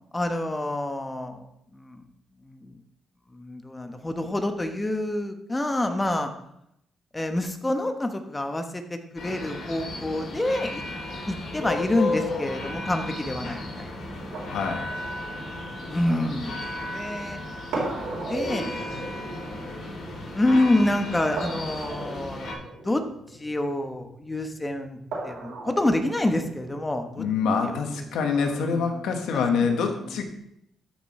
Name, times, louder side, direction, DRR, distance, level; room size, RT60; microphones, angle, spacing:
voice 1, 0.1-2.0 2.4-2.8 3.3-6.3 7.1-10.8 11.3-13.9 15.9-17.4 18.1-18.8 20.3-23.0 23.3-25.0 25.2-27.2 27.6-30.2, left 1 dB, 15° left, 6 dB, 1.0 m, -28 dB
sound 1, 9.2-22.5, left 2 dB, 65° left, 3.1 m, -34 dB
sound 2, 13.6-28.6, right 2 dB, 85° right, 4.0 m, -39 dB
voice 2, 14.5-14.9 27.2-30.2, left 5 dB, 85° left, 4 dB, 1.4 m, -25 dB
13.0 x 6.1 x 3.2 m, 0.77 s
cardioid pair, 110°, 0 cm